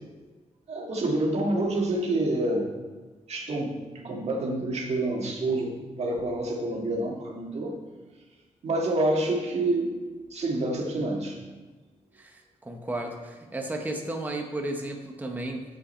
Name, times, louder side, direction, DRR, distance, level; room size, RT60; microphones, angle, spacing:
voice 1, 0.7-2.7 3.3-7.7 8.6-9.9 10.3-11.4, right 2 dB, 55° right, -1 dB, 1.7 m, -27 dB
voice 2, 12.1-15.6, right 1 dB, 15° right, 2 dB, 0.9 m, -34 dB
8.3 x 7.3 x 4.4 m, 1.3 s
wide cardioid pair, 145°, 13 cm